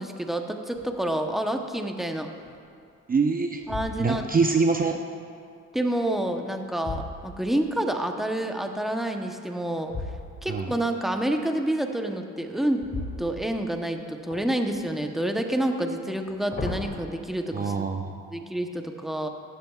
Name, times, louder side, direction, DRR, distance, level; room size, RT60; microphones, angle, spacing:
voice 1, 0.0-2.3 3.7-4.2 5.7-9.9 10.4-12.9 13.2-17.7 18.3-19.3, right 1 dB, ahead, 4 dB, 0.9 m, -28 dB
sound 1, 0.7-1.2 1.7-1.8 2.4-3.0 3.6-4.5 6.1-7.8 9.9-10.7 12.8-13.9 14.3-15.0 16.1-17.0, left 3 dB, 40° left, 1.9 m, -37 dB
voice 2, 3.1-3.6 4.0-5.0 10.5-10.7 17.5-18.1, right 4 dB, 30° right, 4 dB, 0.6 m, -24 dB
15.5 x 12.5 x 2.4 m, 2.3 s
cardioid pair, 90°, 30 cm